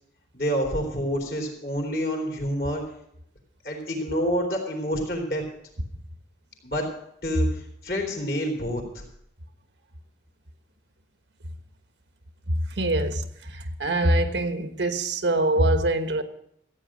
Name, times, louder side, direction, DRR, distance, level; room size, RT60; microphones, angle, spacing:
voice 1, 0.3-2.8 3.6-5.4 6.6-6.9 7.2-8.8, equal, 55° left, 3.8 m, -28 dB
voice 2, 12.5-13.2 13.8-16.2, right 1 dB, 85° right, 1.3 m, -23 dB
15.0 x 9.0 x 6.2 m
head